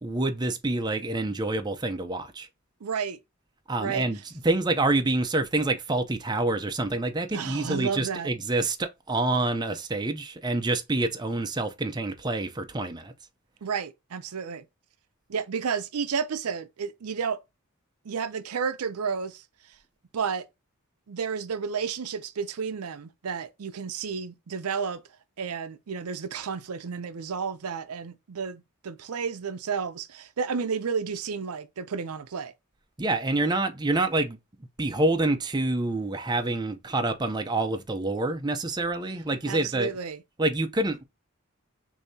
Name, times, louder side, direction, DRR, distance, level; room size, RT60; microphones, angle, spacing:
voice 1, 0.0-2.5 3.7-4.2 4.4-13.1 33.0-34.4 34.8-39.9 40.4-41.0, right 2 dB, 20° right, 0.5 m, -27 dB
voice 2, 2.8-3.2 3.8-4.0 7.3-8.3 13.6-14.6 15.3-17.4 18.1-19.4 20.1-20.5 21.1-25.0 25.4-32.5 39.5-40.2, right 6 dB, 85° right, 0.5 m, -31 dB
6.6 x 2.7 x 2.7 m
head